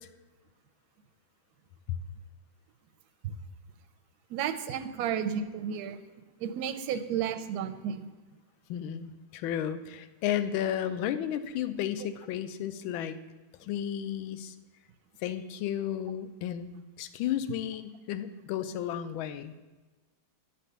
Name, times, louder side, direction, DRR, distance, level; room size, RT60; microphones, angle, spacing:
voice 1, 4.3-6.0 6.4-8.1, right 8 dB, 70° right, 9 dB, 0.9 m, -32 dB
voice 2, 8.7-13.2 13.6-14.5 15.2-19.5, left 10 dB, 80° left, 11 dB, 1.4 m, -33 dB
11.0 x 4.1 x 6.7 m, 1.2 s
omnidirectional pair, 2.3 m